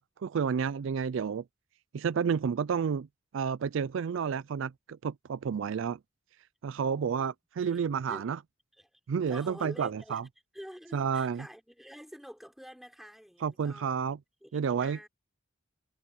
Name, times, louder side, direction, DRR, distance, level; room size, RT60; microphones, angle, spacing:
voice 1, 0.0-1.4 1.9-3.1 3.3-6.0 6.6-8.4 9.1-10.2 10.9-11.5 13.4-14.2 14.5-15.1, right 6 dB, 70° right, 0.4 m, -30 dB
voice 2, 6.8-7.8 8.1-8.3 8.8-9.0 9.3-10.2 10.5-14.0 14.4-15.1, equal, ahead, 5.2 m, -48 dB
head